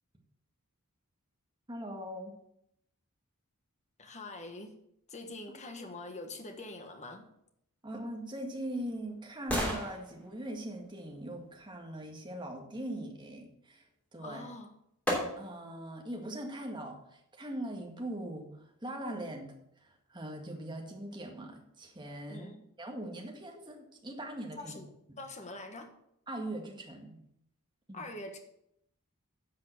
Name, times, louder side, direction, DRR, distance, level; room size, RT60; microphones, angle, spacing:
voice 1, 1.7-2.3 7.8-13.9 14.1-14.4 15.4-22.5 22.8-24.8 25.1-25.2 26.3-27.2 27.9-28.0, right 1 dB, 20° right, 2 dB, 1.8 m, -41 dB
voice 2, 4.0-4.8 5.1-7.3 14.2-14.7 22.3-22.6 24.5-24.9 25.2-25.9 27.9-28.4, left 2 dB, 30° left, 5 dB, 1.5 m, -44 dB
sound 1, 8.1-12.1 14.2-14.3 15.1-15.7 16.2-16.3, equal, 5° left, 3.1 m, -38 dB
10.5 x 5.7 x 6.7 m, 0.76 s
head